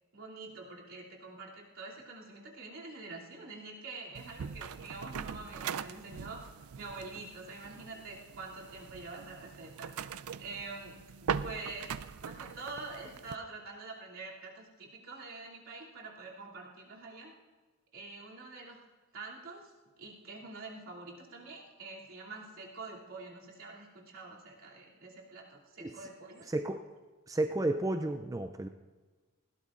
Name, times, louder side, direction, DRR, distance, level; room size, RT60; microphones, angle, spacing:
voice 1, 0.1-6.4 6.7-9.9 10.4-12.0 12.2-17.3 17.9-18.8 19.1-19.7 20.0-26.4, right 3 dB, 70° right, -4 dB, 2.8 m, -46 dB
sound 1, 4.2-13.4, right 7 dB, 90° right, 0.4 m, -41 dB
voice 2, 26.5-26.8 27.3-28.7, right 2 dB, 15° right, 7 dB, 0.3 m, -32 dB
20.5 x 17.0 x 2.5 m, 1.3 s
head